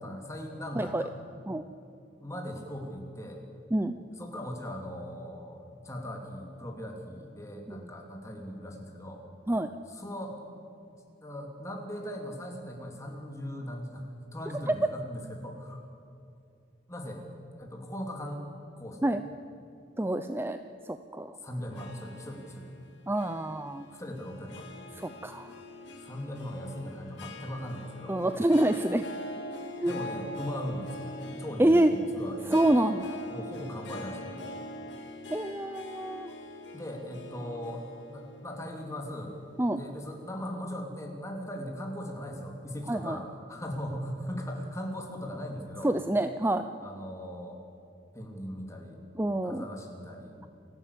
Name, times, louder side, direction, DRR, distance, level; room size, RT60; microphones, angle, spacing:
voice 1, 0.0-1.1 2.2-3.4 4.2-9.2 9.9-10.6 11.2-15.8 16.9-17.2 17.6-18.4 18.8-19.2 21.4-22.7 23.9-24.7 26.0-28.2 29.8-32.6 33.3-34.6 36.7-39.3 39.7-46.0 46.8-47.6 48.1-49.0 49.4-50.4, equal, 15° left, 1 dB, 3.0 m, -39 dB
voice 2, 20.0-20.6 20.9-21.4 23.1-23.8 25.0-25.5 28.1-29.1 29.8-29.9 31.6-31.9 32.5-33.2 35.3-36.3 39.6-39.8 42.9-43.2 45.8-46.7 49.2-49.6, right 1 dB, 15° right, 9 dB, 0.6 m, -27 dB
Harp, 21.7-40.2, left 1 dB, 80° left, 2.4 m, -44 dB
29.0 x 11.5 x 8.5 m, 2.6 s
head